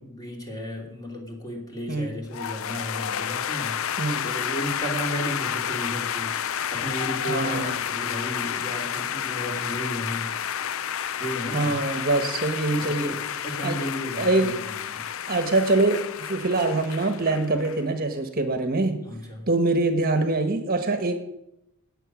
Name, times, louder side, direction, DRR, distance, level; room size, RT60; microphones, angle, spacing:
voice 1, 0.0-3.8 4.2-6.4 6.7-10.4 11.2-11.8 12.8-14.6 14.9-15.0 19.0-19.4, equal, 15° left, 0 dB, 2.9 m, -34 dB
sound 1, 2.3-17.8, left 9 dB, 65° left, 0.5 m, -30 dB
voice 2, 7.3-7.8 11.5-13.8 14.2-14.6 15.3-19.0 19.5-21.2, right 2 dB, 40° right, 7 dB, 1.3 m, -24 dB
18.5 x 7.8 x 6.3 m, 0.85 s
head